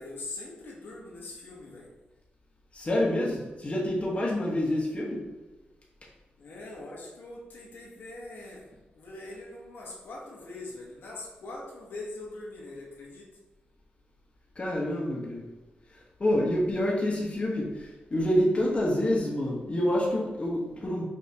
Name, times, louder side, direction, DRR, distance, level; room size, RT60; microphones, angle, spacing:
voice 1, 0.0-1.9 6.4-8.7 9.0-13.3, left 2 dB, 80° left, -4 dB, 1.1 m, -42 dB
voice 2, 2.7-5.3 14.6-15.5 16.2-21.0, left 1 dB, 35° left, -3 dB, 1.1 m, -27 dB
5.4 x 2.8 x 2.8 m, 1.1 s
cardioid pair, 75°, 4 cm